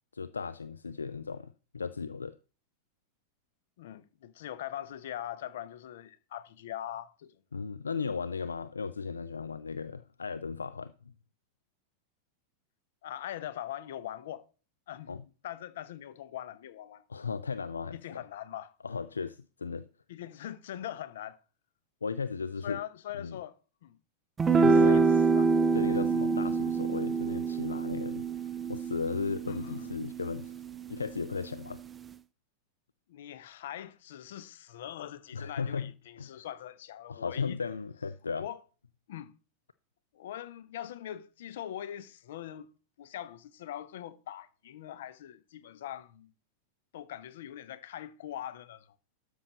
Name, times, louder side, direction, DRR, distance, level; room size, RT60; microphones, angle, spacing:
voice 1, 0.1-2.4 7.5-10.9 15.1-15.2 17.1-18.2 18.8-19.9 22.0-22.8 23.1-23.4 24.5-25.0 25.7-28.3 28.7-30.6 30.9-31.8 35.3-35.9 36.2-36.5 37.1-38.5, left 5 dB, 75° left, 0.4 m, -36 dB
voice 2, 3.8-7.4 13.0-14.4 14.9-15.2 15.4-17.0 17.9-18.7 20.1-21.4 22.6-24.0 24.6-25.5 29.5-29.9 33.1-37.6 38.4-38.6 39.1-39.3 40.1-42.7 43.0-46.3 46.9-48.9, left 11 dB, 55° left, 0.8 m, -42 dB
sound 1, 24.4-30.9, right 4 dB, 20° right, 0.5 m, -26 dB
12.5 x 6.4 x 4.0 m
figure-of-eight pair, 90°, 0 cm